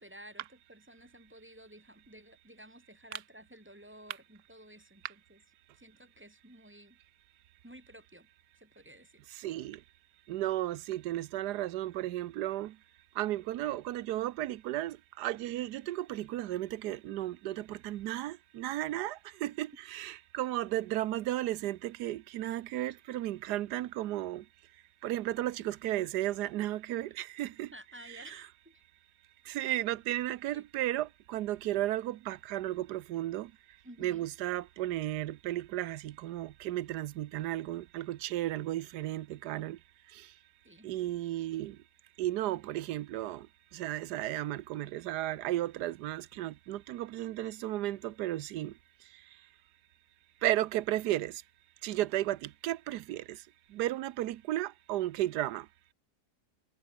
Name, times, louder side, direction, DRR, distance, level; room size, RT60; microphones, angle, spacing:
voice 1, 0.0-5.4 5.7-7.0 7.6-8.3 8.5-9.2 27.7-28.8 30.5-30.7 33.8-34.3 40.6-40.9, equal, 5° right, 2.2 m, -53 dB
voice 2, 9.3-9.8 10.3-12.8 13.1-24.5 25.0-27.7 28.1-28.4 29.4-33.5 34.0-39.8 40.1-40.3 40.8-41.8 42.2-43.5 43.7-48.8 49.1-49.2 50.4-51.4 51.8-55.7, right 14 dB, 80° right, 1.3 m, -34 dB
omnidirectional pair, 1.8 m